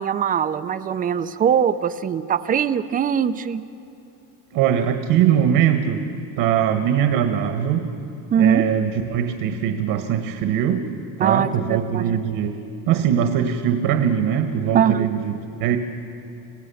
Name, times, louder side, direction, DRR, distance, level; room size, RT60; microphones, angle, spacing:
voice 1, 0.0-3.6 8.3-8.6 11.2-12.2 14.7-15.1, right 8 dB, 20° right, 13 dB, 0.4 m, -21 dB
voice 2, 4.5-6.0 6.4-7.9 8.3-10.9 11.2-12.6 12.9-15.3 15.6-15.8, right 9 dB, 70° right, 7 dB, 1.5 m, -21 dB
27.0 x 17.0 x 7.1 m, 2.9 s
cardioid pair, 175°, 40 cm